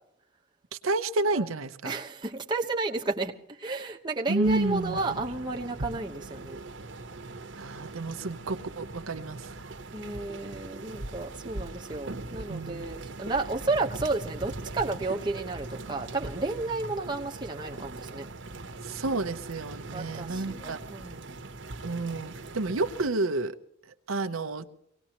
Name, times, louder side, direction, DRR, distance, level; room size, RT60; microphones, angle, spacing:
voice 1, 0.8-2.0 4.3-5.0 7.6-9.4 12.3-12.9 18.9-20.8 21.8-23.6 24.1-24.7, right 2 dB, 85° right, 8 dB, 0.8 m, -30 dB
voice 2, 1.8-3.3 3.6-6.6 9.9-18.3 19.9-21.2, right 3 dB, 20° right, 1 dB, 1.1 m, -32 dB
sound 1, 4.4-23.1, right 2 dB, 65° right, 1.1 m, -41 dB
23.5 x 18.5 x 3.0 m, 0.78 s
head